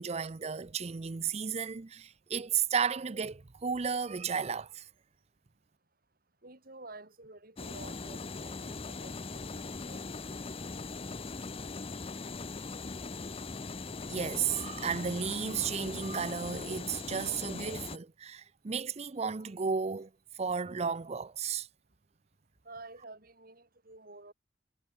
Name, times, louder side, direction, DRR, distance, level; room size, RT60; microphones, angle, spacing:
voice 1, 0.0-4.9 14.1-20.1 20.4-21.7, right 6 dB, 35° right, 0.5 m, -33 dB
voice 2, 6.4-10.2 22.7-24.3, right 2 dB, 50° right, 5.4 m, -51 dB
sound 1, 7.6-18.0, left 3 dB, 30° left, 0.7 m, -40 dB
head